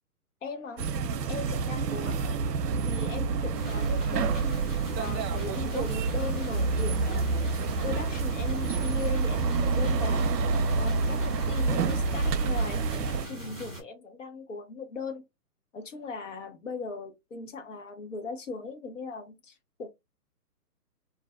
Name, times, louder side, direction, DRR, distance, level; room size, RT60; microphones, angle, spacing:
voice 1, 0.4-0.8 1.3-2.4 2.8-10.3 10.8-15.2 15.7-19.9, left 4 dB, 50° left, 0.8 m, -39 dB
sound 1, 0.8-13.3, right 4 dB, 85° right, 0.5 m, -28 dB
sound 2, 3.5-13.8, right 1 dB, 10° left, 0.8 m, -40 dB
2.5 x 2.1 x 2.3 m
hypercardioid pair, 170°, 48 cm